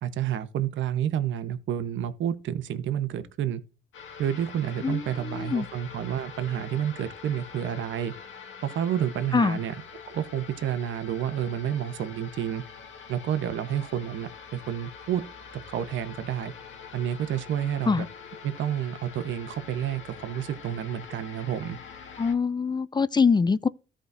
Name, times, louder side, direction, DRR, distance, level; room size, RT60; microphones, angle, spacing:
voice 1, 0.0-3.6 4.2-8.1 8.6-9.7 10.1-12.6 13.1-15.2 15.7-16.5 16.9-18.0 18.4-21.8, right 10 dB, 75° right, 1.0 m, -30 dB
Slow Death to Hell, 3.9-22.4, left 6 dB, 75° left, 2.1 m, -45 dB
voice 2, 4.8-5.7 9.3-9.6 17.9-18.1 22.2-23.7, left 5 dB, 20° left, 0.4 m, -24 dB
14.0 x 5.0 x 2.7 m
cardioid pair, 90°, 20 cm